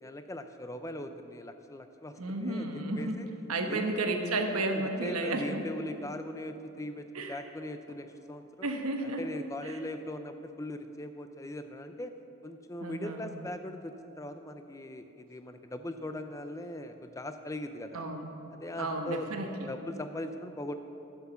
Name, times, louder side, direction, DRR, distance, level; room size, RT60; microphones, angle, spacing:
voice 1, 0.0-3.3 3.7-3.8 4.4-8.7 9.0-12.1 12.4-18.0 18.5-19.3 19.7-20.7, left 1 dB, 15° left, 8 dB, 0.4 m, -40 dB
voice 2, 2.2-3.2 3.5-5.6 7.1-7.4 8.6-9.3 9.6-9.8 12.8-13.3 17.9-18.3 18.8-19.7, right 2 dB, 90° right, 4 dB, 1.1 m, -32 dB
10.0 x 7.2 x 7.0 m, 3.0 s
head